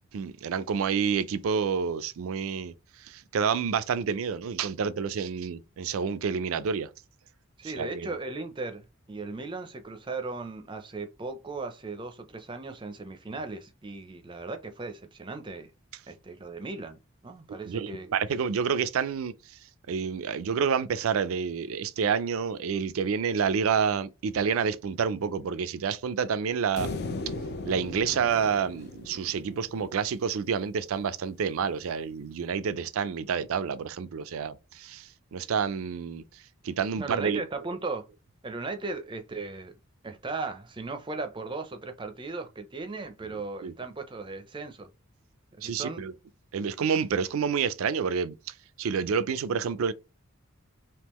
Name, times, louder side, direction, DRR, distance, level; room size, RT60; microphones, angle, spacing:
voice 1, 0.1-6.9 7.6-8.1 17.6-19.6 19.9-27.0 27.7-37.4 43.2-43.7 45.6-46.1 46.5-49.9, right 6 dB, 80° right, 0.4 m, -29 dB
voice 2, 7.6-15.7 16.1-17.0 17.2-18.1 37.0-38.1 38.4-39.8 40.0-44.9 45.6-46.0, right 3 dB, 20° right, 0.4 m, -37 dB
sound 1, 26.8-30.1, left 3 dB, 50° left, 0.4 m, -37 dB
3.6 x 2.8 x 3.0 m
head